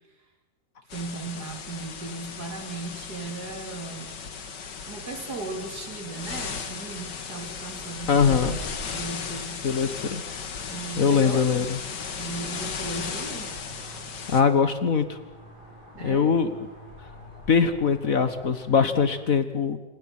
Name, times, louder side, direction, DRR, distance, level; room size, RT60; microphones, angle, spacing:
sound 1, 0.9-14.4, left 6 dB, 70° left, 2.3 m, -36 dB
voice 1, 0.9-4.1 4.9-8.5 8.9-9.6 10.7-11.7 12.2-13.5 16.0-16.4, right 3 dB, 60° right, 4 dB, 3.9 m, -37 dB
sound 2, 7.5-19.2, equal, 25° left, 6.3 m, -45 dB
voice 2, 8.1-8.6 9.6-10.2 11.0-11.8 14.3-15.2 16.0-16.5 17.5-19.8, left 6 dB, 50° left, 11 dB, 1.7 m, -22 dB
27.5 x 26.5 x 6.0 m, 1.0 s
omnidirectional pair, 1.9 m